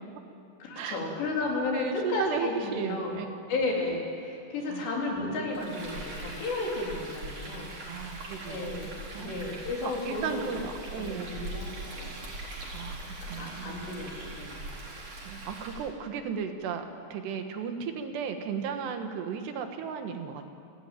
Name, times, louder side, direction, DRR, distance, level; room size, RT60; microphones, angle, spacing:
voice 1, 0.6-3.2 3.5-7.7 8.5-10.6 11.0-12.2 13.2-14.6, left 2 dB, 80° left, -2 dB, 5.9 m, -33 dB
voice 2, 1.7-3.3 4.7-4.9 7.9-11.3 12.7-13.7 15.2-20.5, right 6 dB, 75° right, 6 dB, 3.5 m, -35 dB
Frying (food), 5.5-15.9, right 2 dB, 45° right, 5.7 m, -41 dB
29.5 x 13.0 x 9.2 m, 2.4 s
omnidirectional pair, 4.9 m